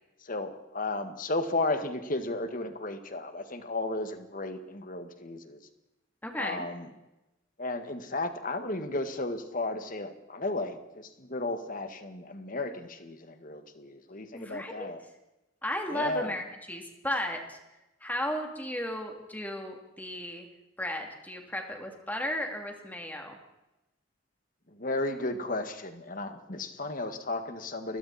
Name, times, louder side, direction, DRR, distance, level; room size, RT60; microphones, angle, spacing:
voice 1, 0.2-5.6 6.4-6.9 7.6-15.0 15.9-16.3 24.7-28.0, left 2 dB, 45° left, 8 dB, 1.9 m, -34 dB
voice 2, 6.2-6.6 14.3-14.9 15.6-17.6 18.0-20.5 20.8-23.4, left 1 dB, 10° left, 3 dB, 2.9 m, -35 dB
29.5 x 21.5 x 4.3 m, 0.96 s
head